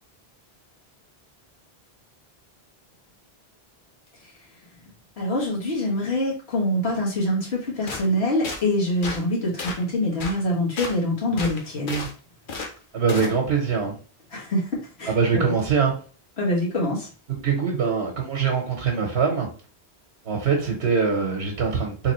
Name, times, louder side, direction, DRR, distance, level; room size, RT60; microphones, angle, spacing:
voice 1, 5.2-12.1 14.3-14.7 15.0-15.5 16.4-17.1, left 1 dB, 80° left, -5 dB, 1.8 m, -25 dB
sound 1, 7.9-8.1 8.4-8.6 9.0-9.2 9.6-9.8 10.2-10.4 10.8-11.0 11.4-12.1 12.5-12.7 13.1-13.3, left 3 dB, 55° left, 0.9 m, -32 dB
voice 2, 12.9-13.9 15.1-16.0 17.3-19.5 20.2-22.1, right 5 dB, 90° right, 1 dB, 1.2 m, -23 dB
3.7 x 2.9 x 3.0 m, 0.39 s
omnidirectional pair, 1.1 m